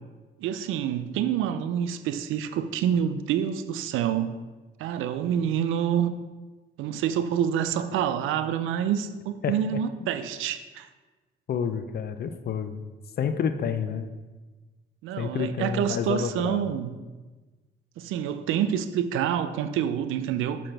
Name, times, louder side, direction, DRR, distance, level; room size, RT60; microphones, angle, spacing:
voice 1, 0.4-4.4 4.8-6.1 6.8-10.9 15.0-17.0 18.0-20.6, right 9 dB, 85° right, 11 dB, 0.4 m, -27 dB
voice 2, 11.5-12.8 13.2-14.1 15.2-16.7, left 7 dB, 50° left, 10 dB, 0.5 m, -29 dB
6.1 x 5.9 x 3.3 m, 1.3 s
cardioid pair, 90°, 20 cm